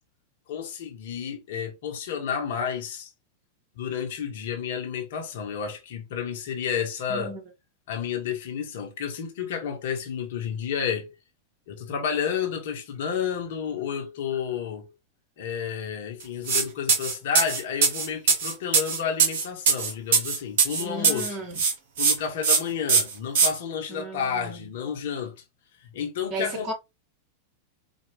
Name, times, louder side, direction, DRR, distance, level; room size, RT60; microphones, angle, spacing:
voice 1, 0.5-3.1 3.8-7.4 7.9-11.1 11.7-14.9 15.4-21.4 22.0-25.4 25.9-26.7, left 7 dB, 55° left, 1.0 m, -31 dB
voice 2, 7.1-7.4 20.8-21.5 23.9-24.7 26.3-26.7, right 1 dB, 35° right, 1.6 m, -34 dB
sound 1, 16.5-16.6 16.9-21.3 21.6-22.1 22.4-22.6 22.9-23.5, right 5 dB, 55° right, 1.1 m, -21 dB
4.5 x 2.4 x 3.2 m
figure-of-eight pair, 90°, 0 cm